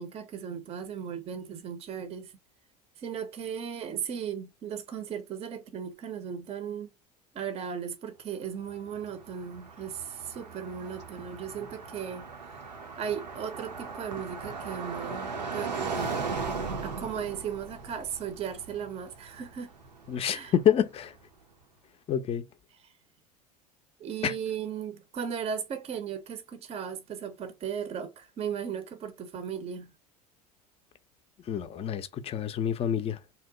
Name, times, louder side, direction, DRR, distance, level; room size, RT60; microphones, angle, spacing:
voice 1, 0.0-2.3 3.0-6.9 7.3-12.3 13.0-16.5 16.8-19.7 20.3-20.5 22.7-22.9 24.0-29.9, right 8 dB, 30° right, 0.5 m, -36 dB
Car passing by, 8.7-20.7, right 4 dB, 85° right, 0.6 m, -38 dB
voice 2, 20.1-21.1 22.1-22.4 24.2-24.3 31.5-33.2, left 9 dB, 30° left, 0.4 m, -27 dB
2.8 x 2.1 x 3.7 m
figure-of-eight pair, 70°, 21 cm